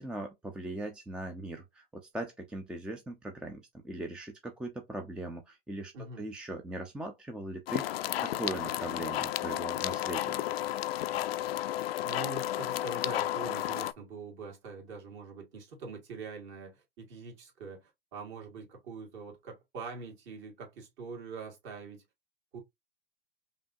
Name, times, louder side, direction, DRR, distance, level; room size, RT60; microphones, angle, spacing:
voice 1, 0.0-5.9 6.2-10.4, right 1 dB, 5° right, 0.4 m, -40 dB
voice 2, 5.9-6.3 12.0-22.0 22.5-22.6, right 4 dB, 40° right, 2.0 m, -44 dB
sound 1, 7.7-13.9, left 13 dB, 80° left, 0.5 m, -32 dB
5.1 x 2.8 x 2.6 m
hypercardioid pair, 115°, 30 cm